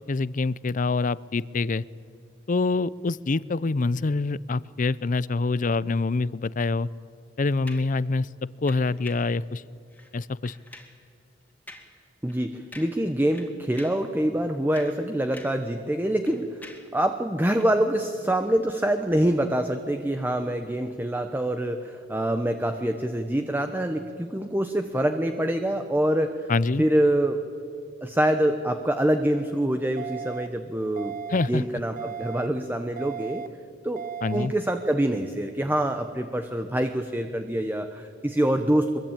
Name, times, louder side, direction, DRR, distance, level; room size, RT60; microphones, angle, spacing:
voice 1, 0.0-1.8 2.5-6.9 7.4-8.3 8.6-9.6 10.1-10.5 26.5-26.9 31.3-31.6 34.2-34.5, left 3 dB, 45° left, 19 dB, 0.5 m, -25 dB
sound 1, 7.7-8.0 8.7-9.3 9.9-10.1 10.5-11.0 11.7-12.0 12.3-12.4 12.7-13.1 13.3-14.1 14.5-15.7 16.0-17.0 17.6-17.7, left 1 dB, 10° left, 2.4 m, -47 dB
voice 2, 12.2-16.6 16.9-26.5 26.8-27.4 28.0-31.1 31.5-33.4 33.8-34.0 34.3-39.0, right 1 dB, 10° right, 6 dB, 1.0 m, -25 dB
sound 2, 30.0-30.5 31.0-31.5 32.0-32.5 33.0-33.5 34.0-34.5, right 7 dB, 45° right, 0.9 m, -35 dB
23.5 x 23.5 x 8.9 m, 2.3 s
head